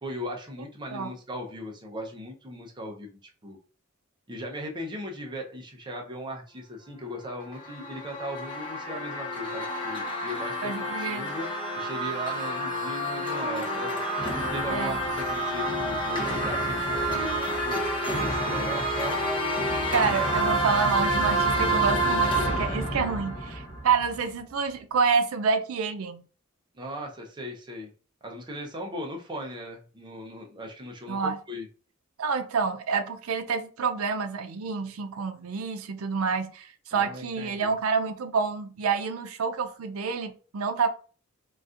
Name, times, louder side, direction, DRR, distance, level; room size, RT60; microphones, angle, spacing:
voice 1, 0.0-3.6 4.3-11.5 11.7-14.0 14.4-17.8 18.1-19.2 26.7-27.9 28.2-31.7 36.9-37.7, equal, 20° right, 0.6 m, -38 dB
sound 1, 7.3-24.2, right 1 dB, 25° left, 0.9 m, -28 dB
voice 2, 10.6-11.3 14.7-15.0 19.9-26.2 31.1-31.4 32.2-40.9, right 5 dB, 90° right, 0.5 m, -28 dB
4.0 x 2.4 x 2.4 m
head